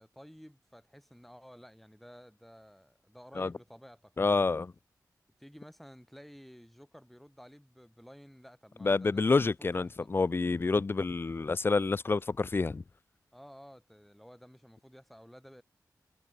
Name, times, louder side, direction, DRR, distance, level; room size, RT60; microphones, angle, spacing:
voice 1, 0.0-4.1 5.4-10.1 13.3-15.6, equal, ahead, 4.0 m, -53 dB
voice 2, 4.2-4.7 8.8-12.8, left 4 dB, 30° left, 0.3 m, -28 dB
wide cardioid pair, 90°, 7 cm